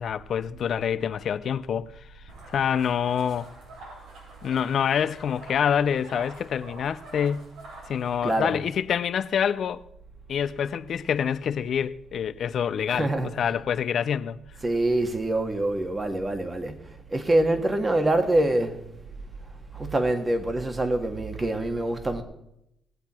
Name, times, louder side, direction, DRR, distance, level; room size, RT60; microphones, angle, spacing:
voice 1, 0.0-2.1 2.5-3.5 4.4-7.4 7.9-9.8 10.3-14.4, left 8 dB, 60° left, 0.6 m, -26 dB
sound 1, 2.3-8.3, right 1 dB, 90° right, 5.9 m, -46 dB
voice 2, 8.2-8.6 12.9-13.5 14.6-18.9 19.7-22.2, right 1 dB, 25° right, 1.8 m, -25 dB
19.5 x 8.1 x 4.4 m
cardioid pair, 90°, 0 cm